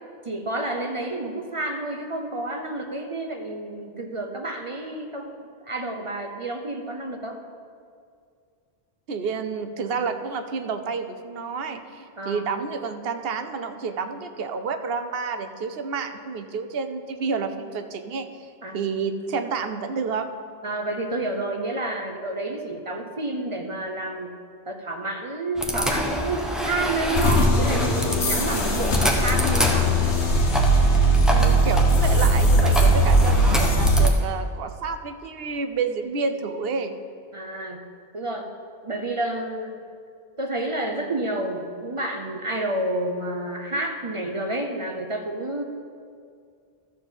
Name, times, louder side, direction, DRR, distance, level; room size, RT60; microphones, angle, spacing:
voice 1, 0.3-7.4 12.2-12.4 18.6-18.8 20.6-24.3 24.7-29.9 37.3-37.9 38.1-38.5 38.8-39.8 40.4-45.6, right 2 dB, 35° right, 3 dB, 0.7 m, -30 dB
voice 2, 9.1-18.3 18.7-20.3 31.3-36.9, right 5 dB, 65° right, 8 dB, 0.9 m, -29 dB
sound 1, 25.6-34.1, equal, ahead, 0.8 m, -27 dB
sound 2, 27.2-34.1, right 1 dB, 90° left, 1.4 m, -19 dB
12.5 x 4.3 x 7.0 m, 2.2 s
omnidirectional pair, 1.1 m